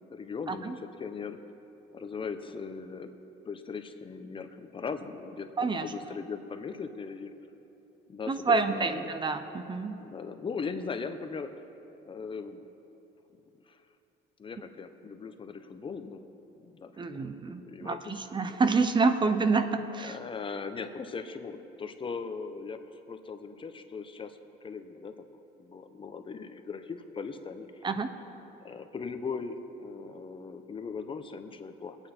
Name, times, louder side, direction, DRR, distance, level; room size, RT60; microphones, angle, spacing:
voice 1, 0.1-1.4 1.9-3.1 3.4-7.3 8.1-9.1 10.0-11.5 12.1-12.6 13.7-13.8 14.4-16.3 16.6-18.6 19.6-19.7 20.0-22.8 23.1-24.4 24.6-25.3 25.6-27.9 28.6-32.0, left 5 dB, 30° left, 8 dB, 0.9 m, -39 dB
voice 2, 5.6-5.9 8.3-10.0 17.0-20.2 27.8-28.1, right 4 dB, 30° right, 10 dB, 0.7 m, -28 dB
23.0 x 8.9 x 4.4 m, 2.9 s
cardioid pair, 110°, 17 cm